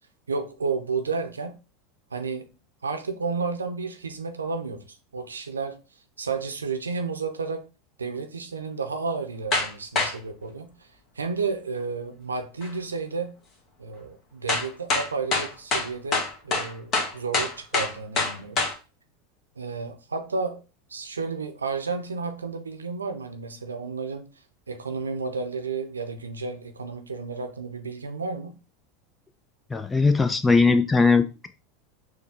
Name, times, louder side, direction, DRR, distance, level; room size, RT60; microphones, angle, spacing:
voice 1, 0.3-1.6 2.1-2.5 2.8-5.8 6.2-7.6 8.0-10.7 11.2-13.3 13.8-18.6 19.6-20.6 20.9-24.3 24.7-28.6, right 4 dB, 80° right, 0.7 m, -32 dB
sound 1, 9.5-9.7 10.0-10.1 12.6-12.7 14.5-18.7, left 3 dB, 35° left, 1.3 m, -25 dB
voice 2, 29.7-31.5, left 4 dB, 15° left, 0.6 m, -20 dB
6.5 x 2.3 x 3.4 m
figure-of-eight pair, 80°, 0 cm